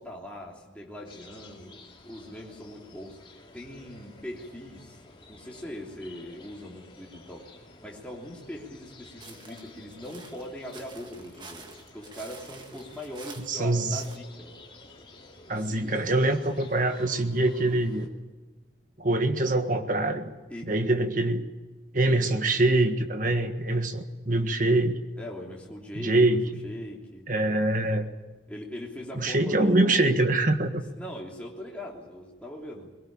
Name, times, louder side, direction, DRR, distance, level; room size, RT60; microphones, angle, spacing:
voice 1, 0.0-1.7 2.1-5.0 5.3-7.4 7.8-14.5 15.5-15.9 20.5-20.9 25.2-26.4 26.6-27.2 28.5-30.2 30.9-32.9, left 1 dB, 5° left, -3 dB, 3.2 m, -41 dB
sound 1, 1.1-18.1, left 2 dB, 30° left, 2.6 m, -51 dB
sound 2, 9.2-14.2, right 4 dB, 25° right, 1.8 m, -49 dB
voice 2, 13.5-14.0 15.5-18.1 19.0-20.3 20.7-21.4 21.9-25.0 25.9-26.6 27.3-28.1 29.2-30.8, right 2 dB, 45° right, 7 dB, 1.7 m, -24 dB
22.0 x 18.5 x 8.9 m, 1.3 s
head